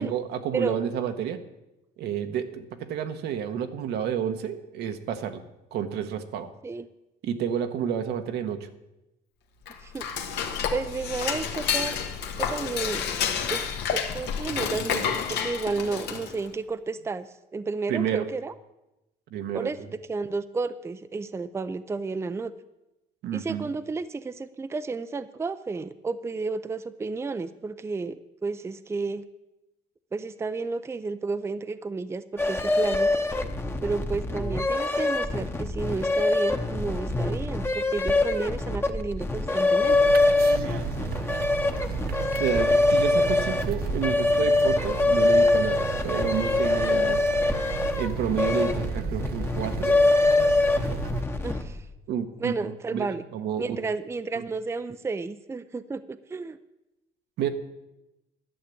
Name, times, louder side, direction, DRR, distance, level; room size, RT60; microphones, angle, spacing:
voice 1, 0.0-1.4 2.0-5.4 5.7-6.5 7.2-8.7 17.9-18.3 19.3-19.7 23.2-23.7 42.4-47.2 47.9-49.9 52.1-52.5 52.9-53.8 54.3-54.4 57.4-57.5, right 8 dB, 80° right, 7 dB, 1.2 m, -30 dB
Dishes pots and pans / Cutlery silverware, 9.6-16.5, left 7 dB, 80° left, 1.5 m, -30 dB
voice 2, 10.7-12.0 12.4-13.0 13.5-18.5 19.5-22.5 23.3-29.2 30.1-33.1 33.8-40.1 51.4-51.8 52.4-53.2 53.6-56.6, right 4 dB, 15° right, 12 dB, 0.5 m, -32 dB
sound 1, 32.4-51.8, left 2 dB, 15° left, 1.0 m, -24 dB
sound 2, 39.8-51.2, right 10 dB, 65° right, 0.6 m, -34 dB
11.5 x 6.7 x 8.5 m, 0.95 s
cardioid pair, 110°, 17 cm